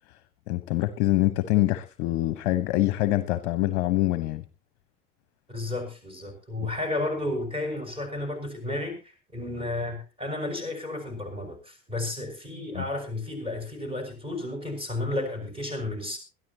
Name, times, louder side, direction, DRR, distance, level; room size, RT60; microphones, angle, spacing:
voice 1, 0.5-4.4 12.7-12.8, left 16 dB, 45° left, 14 dB, 0.9 m, -25 dB
voice 2, 5.5-16.2, left 2 dB, 10° right, 6 dB, 5.9 m, -32 dB
22.0 x 13.5 x 2.9 m, 0.32 s
figure-of-eight pair, 80°, 47 cm